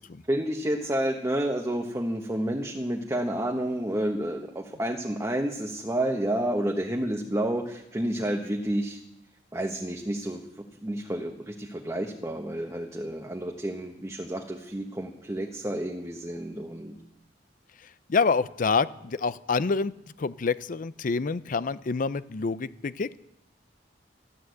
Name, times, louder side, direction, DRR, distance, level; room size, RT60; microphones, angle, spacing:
voice 1, 0.3-9.0 9.5-10.4 10.8-16.9, right 1 dB, 15° right, 2 dB, 1.1 m, -30 dB
voice 2, 18.1-19.9 20.2-23.2, left 4 dB, 50° left, 17 dB, 0.5 m, -27 dB
14.0 x 11.0 x 7.9 m, 0.85 s
head